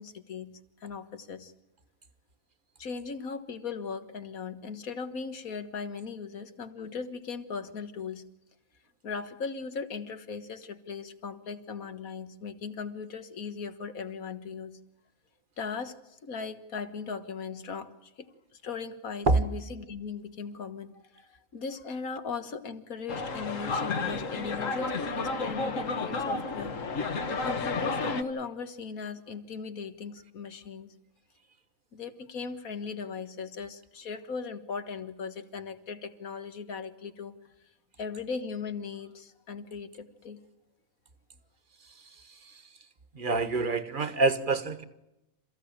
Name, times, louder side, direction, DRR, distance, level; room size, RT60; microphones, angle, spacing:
voice 1, 0.0-1.5 2.8-8.2 9.0-14.8 15.6-26.8 27.4-30.9 31.9-37.4 38.0-40.4, left 5 dB, 85° left, 10 dB, 1.9 m, -38 dB
sound 1, 23.1-28.2, left 3 dB, 65° left, 1.8 m, -31 dB
voice 2, 42.0-42.6 43.1-44.8, right 3 dB, 40° right, 13 dB, 1.5 m, -27 dB
28.0 x 15.5 x 8.8 m, 0.93 s
omnidirectional pair, 1.5 m